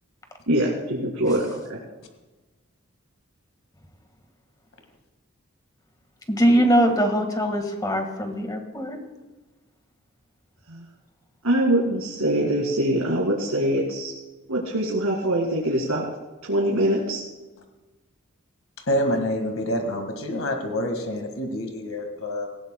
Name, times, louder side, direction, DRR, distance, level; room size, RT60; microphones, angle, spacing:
voice 1, 0.5-1.8 10.7-10.8 11.4-14.1 14.5-16.0 16.4-17.2, right 1 dB, 85° right, -3 dB, 2.2 m, -23 dB
voice 2, 6.3-9.0, equal, 15° left, 5 dB, 1.7 m, -21 dB
voice 3, 18.9-22.5, left 1 dB, 75° left, 5 dB, 1.8 m, -27 dB
18.5 x 16.5 x 2.3 m, 1.2 s
head